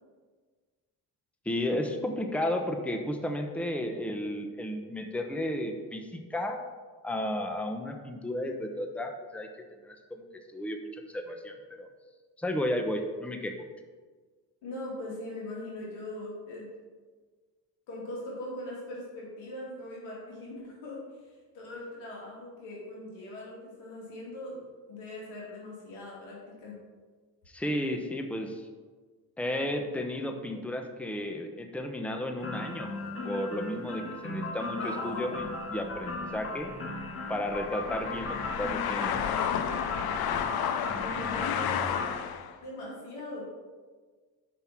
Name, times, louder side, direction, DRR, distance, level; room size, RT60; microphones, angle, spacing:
voice 1, 1.4-6.6 7.0-10.2 10.5-11.9 12.4-13.5 27.5-28.6 29.4-32.9 33.2-36.7 37.3-39.1, left 1 dB, 5° left, 5 dB, 0.9 m, -33 dB
voice 2, 14.6-16.7 17.9-21.0 21.5-24.6 24.9-26.7 34.8-35.3 41.0-41.8 42.6-43.5, left 1 dB, 90° left, -4 dB, 2.7 m, -40 dB
sound 1, 32.4-42.1, left 2 dB, 30° left, 1.5 m, -38 dB
sound 2, 35.4-42.5, left 8 dB, 60° left, 0.7 m, -32 dB
6.2 x 5.5 x 5.8 m, 1.4 s
supercardioid pair, 60°, 42 cm